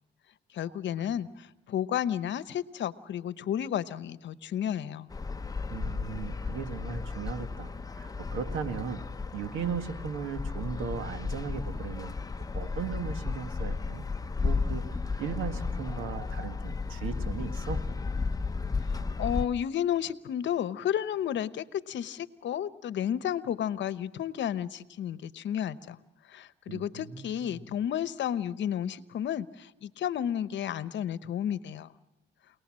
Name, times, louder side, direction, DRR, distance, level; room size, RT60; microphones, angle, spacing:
voice 1, 0.5-5.1 18.8-26.0 26.3-31.9, left 10 dB, 65° left, 16 dB, 0.9 m, -32 dB
sound 1, 5.1-19.5, left 4 dB, 20° left, 0.8 m, -34 dB
voice 2, 5.7-9.1 9.3-12.2 12.5-14.0 14.4-17.9 26.7-27.6, right 6 dB, 85° right, 10 dB, 1.8 m, -37 dB
29.0 x 19.0 x 7.5 m, 1.0 s
cardioid pair, 90°, 20 cm